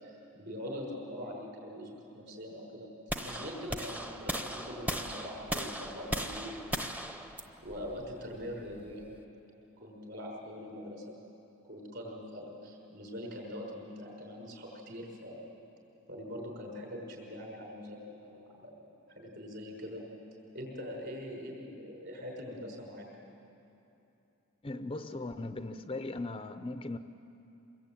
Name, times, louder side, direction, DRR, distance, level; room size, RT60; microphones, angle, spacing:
voice 1, 0.0-2.9 3.2-6.8 7.6-9.0 9.8-11.1 11.7-15.5 16.1-18.8 19.1-20.0 20.5-23.1, equal, 55° right, 0 dB, 6.0 m, -43 dB
sound 1, 3.1-9.2, equal, 5° right, 0.8 m, -38 dB
voice 2, 24.6-27.0, left 2 dB, 25° left, 9 dB, 0.5 m, -38 dB
24.5 x 21.5 x 9.0 m, 2.9 s
head